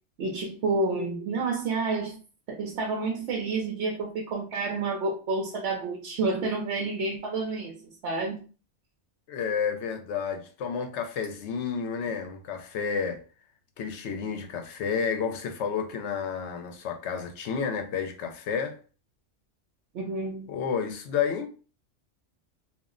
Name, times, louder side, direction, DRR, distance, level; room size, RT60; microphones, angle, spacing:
voice 1, 0.2-2.2 2.5-8.5 19.9-20.5, right 3 dB, 70° right, 0.9 m, -29 dB
voice 2, 9.3-13.2 13.8-18.8 20.5-21.5, left 6 dB, 75° left, 0.8 m, -31 dB
2.4 x 2.0 x 3.6 m
omnidirectional pair, 1.2 m